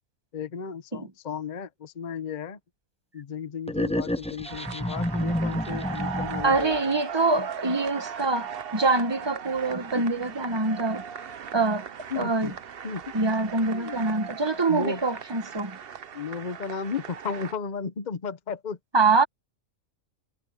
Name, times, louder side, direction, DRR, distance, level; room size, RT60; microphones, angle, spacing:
voice 1, 0.3-2.6 3.1-6.8 9.9-10.0 12.1-12.5 12.8-13.0 13.7-14.0 14.7-15.0 16.1-18.8, left 6 dB, 40° left, 0.9 m, -34 dB
sound 1, 3.7-6.8, left 1 dB, 5° left, 0.6 m, -29 dB
sound 2, 4.4-17.5, right 8 dB, 50° right, 0.9 m, -38 dB
voice 2, 6.4-11.0 11.5-11.9 12.2-12.5 13.1-15.8 18.9-19.2, right 3 dB, 20° right, 1.2 m, -25 dB
omnidirectional pair, 1.4 m